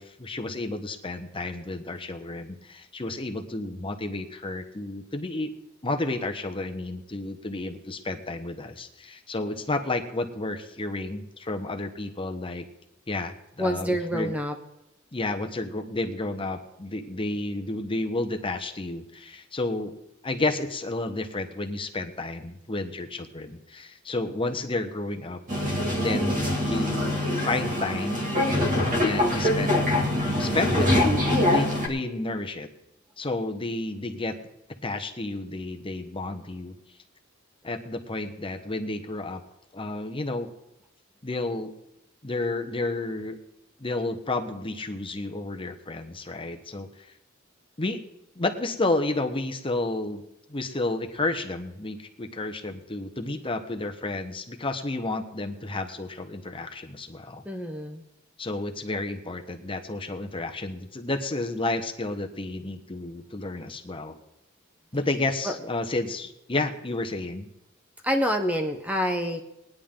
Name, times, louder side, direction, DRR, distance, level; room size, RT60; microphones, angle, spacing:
voice 1, 0.0-5.5 5.8-12.7 13.1-14.3 15.1-19.9 20.2-25.4 26.0-28.7 29.0-29.8 30.4-32.7 33.2-34.4 34.8-36.7 37.6-39.4 39.7-40.5 41.2-41.7 42.2-43.4 43.8-47.1 47.8-48.0 48.3-50.2 50.5-57.4 58.4-64.2 64.9-67.5, left 2 dB, 25° left, 5 dB, 1.0 m, -31 dB
voice 2, 13.6-14.5 30.4-30.5 57.4-58.0 65.4-65.6 68.0-69.4, equal, 5° right, 5 dB, 0.8 m, -27 dB
sound 1, 25.5-31.9, left 1 dB, 40° right, 2.2 m, -24 dB
19.5 x 10.5 x 3.7 m, 0.86 s
head